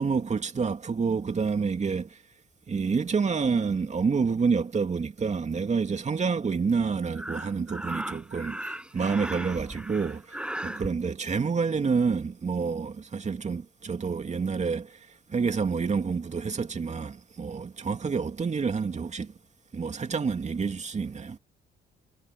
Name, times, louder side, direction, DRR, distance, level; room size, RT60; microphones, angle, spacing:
voice 1, 0.0-2.2 2.7-19.3 19.7-21.4, right 5 dB, 35° right, 2.5 m, -28 dB
Breathing, 7.1-10.9, right 1 dB, 5° right, 6.4 m, -37 dB
cardioid pair, 90°, 20 cm